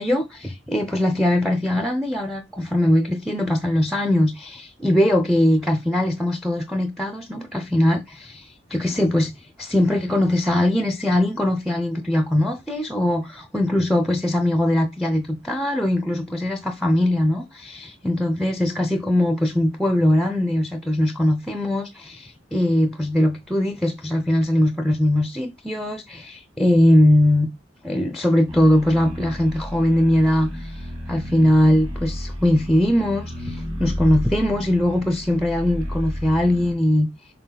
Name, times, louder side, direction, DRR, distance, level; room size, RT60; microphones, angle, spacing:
voice 1, 0.0-9.3 9.6-27.5 27.8-37.1, left 1 dB, ahead, 0.6 m, -21 dB
sound 1, 28.5-36.7, equal, 35° right, 3.0 m, -32 dB
6.7 x 3.9 x 3.9 m
head